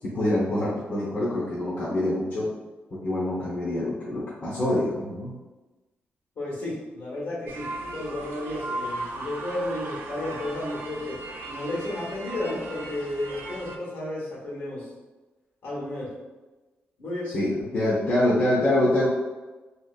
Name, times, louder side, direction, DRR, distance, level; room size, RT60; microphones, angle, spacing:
voice 1, 0.0-2.5 2.9-5.4 17.3-19.1, left 1 dB, 50° left, -9 dB, 0.9 m, -25 dB
voice 2, 6.3-7.7 7.9-11.2 11.5-14.9 15.6-16.1 17.0-17.3, left 1 dB, 75° left, -7 dB, 1.4 m, -32 dB
sound 1, 7.5-13.8, right 2 dB, 80° right, 0.5 m, -37 dB
3.0 x 3.0 x 2.5 m, 1.2 s
wide cardioid pair, 125°, 4 cm